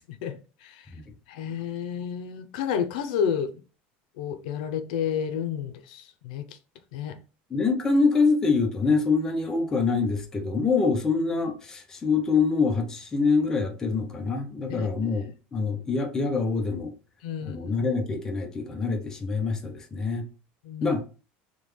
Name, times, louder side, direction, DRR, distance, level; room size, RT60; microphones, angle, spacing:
voice 1, 0.2-0.9 1.3-3.6 4.2-6.4 6.9-7.2 14.7-14.9 17.2-17.6 20.6-21.0, left 8 dB, 85° left, 0.5 m, -30 dB
voice 2, 7.5-16.9 17.4-20.3 20.8-21.0, left 4 dB, 15° left, 0.6 m, -25 dB
3.6 x 2.3 x 3.1 m
cardioid pair, 170°, 4 cm